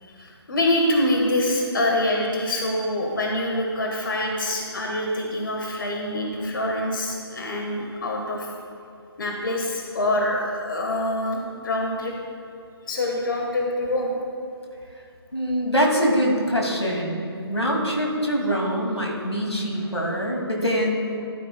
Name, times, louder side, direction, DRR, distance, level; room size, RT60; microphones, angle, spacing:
voice 1, 0.0-8.5 9.2-12.1 12.8-14.1, left 1 dB, 50° left, 0 dB, 1.4 m, -25 dB
voice 2, 15.3-21.1, equal, 85° left, 0 dB, 2.3 m, -24 dB
13.5 x 10.0 x 2.3 m, 2.5 s
figure-of-eight pair, 145°, 14 cm